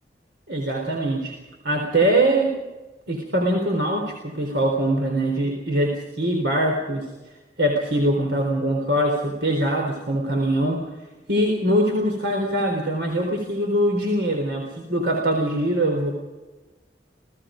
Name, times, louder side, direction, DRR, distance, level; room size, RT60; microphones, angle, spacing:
voice 1, 0.5-1.4 1.6-2.5 3.1-7.1 7.6-10.9 11.3-16.1, right 1 dB, 75° right, 1 dB, 3.9 m, -22 dB
29.5 x 18.0 x 5.2 m, 1.2 s
head